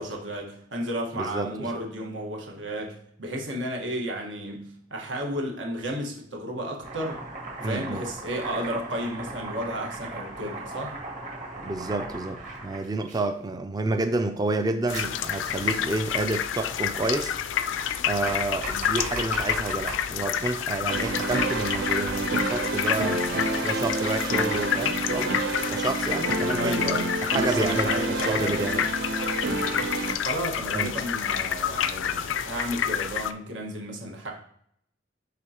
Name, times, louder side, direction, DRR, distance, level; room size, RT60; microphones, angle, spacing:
voice 1, 0.0-7.2 7.6-10.9 26.6-27.1 27.3-28.5 29.4-29.8 30.2-34.3, right 1 dB, 80° right, 0 dB, 1.5 m, -33 dB
voice 2, 1.2-1.7 7.6-8.0 11.6-17.3 18.1-23.2 23.6-26.8 27.2-28.9 30.7-30.9, right 2 dB, 20° right, 7 dB, 0.4 m, -29 dB
Domestic sounds home sounds, 6.8-13.2 14.9-16.0 17.8-20.1 20.9-22.4 22.9-24.6, right 2 dB, 40° right, 1.7 m, -38 dB
sound 1, 14.9-33.3, left 9 dB, 90° left, 0.4 m, -29 dB
sound 2, 20.9-30.1, right 3 dB, 60° right, 0.7 m, -29 dB
9.9 x 3.9 x 2.9 m, 0.69 s
head